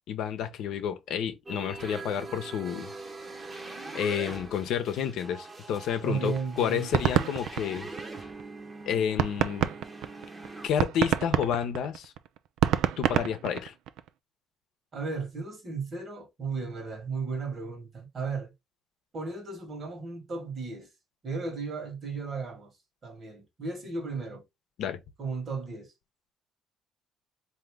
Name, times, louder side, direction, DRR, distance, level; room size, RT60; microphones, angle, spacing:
voice 1, 0.1-2.9 3.9-7.9 8.9-9.7 10.6-12.1 13.0-13.7 24.8-25.0, left 8 dB, 75° left, 0.7 m, -30 dB
sound 1, 1.5-10.7, right 3 dB, 20° right, 0.9 m, -42 dB
voice 2, 6.0-7.0 14.9-18.5 19.1-20.9 21.2-22.7 23.0-24.4 25.2-25.9, right 4 dB, 40° right, 1.4 m, -35 dB
sound 2, 6.4-8.4 8.8-8.9 9.2-14.1, right 11 dB, 80° right, 0.3 m, -27 dB
3.9 x 2.7 x 3.4 m
cardioid pair, 125°, 0 cm